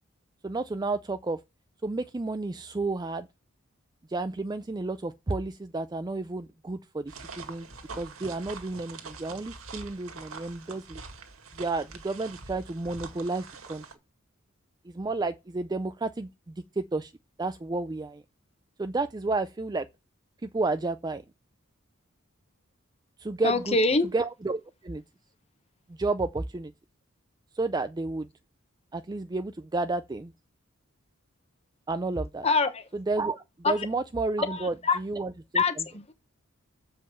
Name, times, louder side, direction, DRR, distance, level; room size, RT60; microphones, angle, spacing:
voice 1, 0.4-1.4 1.8-3.3 4.1-7.7 7.9-11.0 11.6-13.8 14.9-16.3 16.8-17.1 17.4-18.2 18.8-19.9 20.4-21.2 23.2-23.8 24.1-25.0 25.9-26.7 27.6-28.3 28.9-30.3 31.9-32.5 32.9-35.6, right 3 dB, 20° right, 0.4 m, -31 dB
sound 1, 7.1-13.9, right 4 dB, 85° right, 1.9 m, -44 dB
voice 2, 23.4-24.1 32.4-32.8 33.6-33.9 34.5-35.0 35.5-35.7, left 3 dB, 30° left, 1.1 m, -24 dB
7.4 x 5.3 x 6.9 m
head